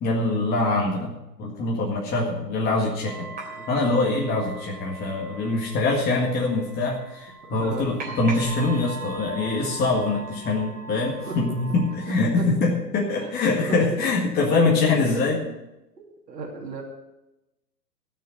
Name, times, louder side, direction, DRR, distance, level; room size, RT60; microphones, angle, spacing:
voice 1, 0.0-3.3 3.7-15.4, left 3 dB, 20° left, -2 dB, 1.9 m, -24 dB
sound 1, 3.0-12.1, right 3 dB, 15° right, 3.5 m, -40 dB
voice 2, 7.4-7.9 11.3-11.6 12.1-12.8 13.2-13.3 13.6-14.1 14.6-15.5 16.0-16.8, right 3 dB, 75° right, 0 dB, 2.7 m, -36 dB
14.5 x 6.5 x 8.0 m, 0.95 s
hypercardioid pair, 120°, 50 cm